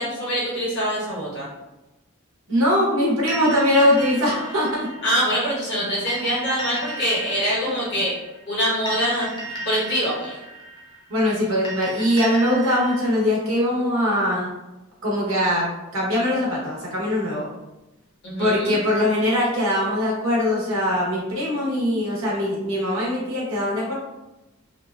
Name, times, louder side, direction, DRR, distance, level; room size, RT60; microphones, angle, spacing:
voice 1, 0.0-1.5 5.0-8.1 8.5-9.3 9.6-10.4 18.2-18.8, equal, 55° left, -6 dB, 1.1 m, -24 dB
voice 2, 2.5-4.9 11.1-14.5 15.0-15.7 15.9-17.5 18.4-23.9, left 1 dB, 75° right, -5 dB, 0.9 m, -21 dB
sound 1, 3.3-13.1, right 1 dB, 20° left, 0.4 m, -36 dB
2.8 x 2.2 x 2.3 m, 1.0 s
head